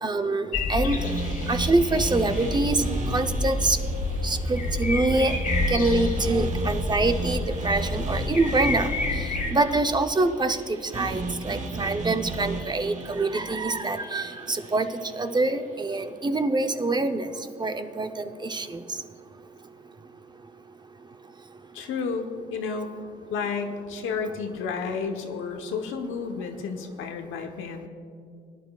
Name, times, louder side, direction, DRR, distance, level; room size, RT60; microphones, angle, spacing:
voice 1, 0.0-1.1 1.5-2.8 3.1-3.8 4.2-5.3 5.7-8.9 9.5-10.6 10.9-14.9 15.2-17.3 17.6-18.1 18.5-18.7, right 2 dB, 20° right, 7 dB, 0.7 m, -25 dB
sound 1, 0.5-9.5, left 2 dB, 45° left, 1.3 m, -28 dB
sound 2, 1.0-15.1, right 3 dB, 40° right, 1.1 m, -35 dB
voice 2, 21.7-22.9 23.3-27.9, left 5 dB, 85° left, 4 dB, 1.1 m, -31 dB
21.5 x 10.5 x 2.4 m, 2.4 s
cardioid pair, 90°, 20 cm